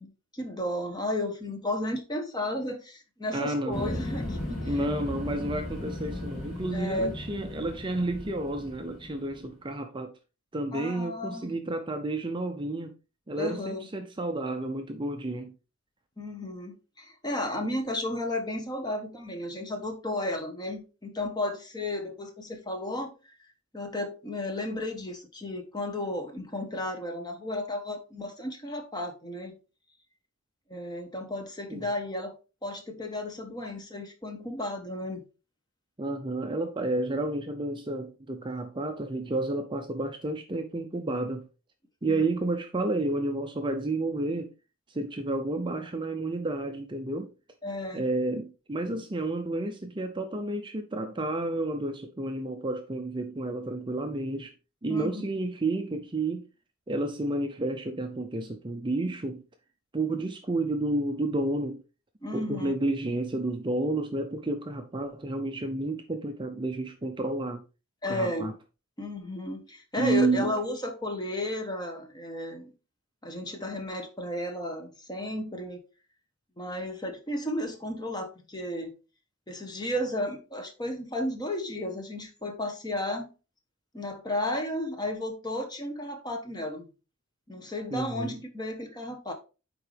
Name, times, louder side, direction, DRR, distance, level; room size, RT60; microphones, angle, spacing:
voice 1, 0.0-4.7 6.7-7.1 10.7-11.6 13.4-13.9 16.2-23.3 23.7-29.6 30.7-32.3 32.6-35.2 42.1-42.3 47.6-48.0 54.9-55.2 62.2-62.7 68.0-68.5 69.0-72.7 73.2-75.8 76.6-78.9 79.5-83.3 83.9-86.9 87.5-89.3, left 1 dB, 20° left, 1.2 m, -33 dB
voice 2, 3.3-4.0 4.6-10.1 10.5-12.9 13.3-15.5 31.7-31.9 36.0-41.5 42.0-44.5 44.9-47.3 47.9-54.5 54.8-56.5 56.9-59.4 59.9-61.8 62.3-67.6 68.1-68.5 70.0-70.6 87.9-88.4, right 2 dB, 20° right, 0.6 m, -31 dB
sound 1, 3.7-9.5, left 1 dB, 40° left, 2.8 m, -36 dB
9.2 x 3.8 x 3.4 m
head